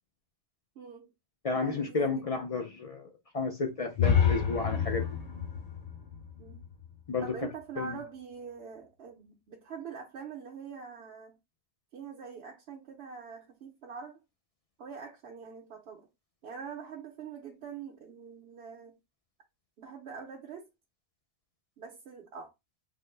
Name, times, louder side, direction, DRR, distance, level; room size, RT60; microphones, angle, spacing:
voice 1, 0.8-1.1 1.6-2.4 6.4-6.6 7.2-11.3 11.9-14.2 14.8-16.1 16.4-19.0 19.8-20.7 21.8-22.5, right 6 dB, 65° right, 0.9 m, -44 dB
voice 2, 1.4-5.1 7.1-7.4 7.8-8.0, left 4 dB, 60° left, 0.3 m, -32 dB
sound 1, 3.9-7.8, left 7 dB, 40° left, 0.7 m, -29 dB
3.7 x 2.0 x 3.1 m
omnidirectional pair, 1.2 m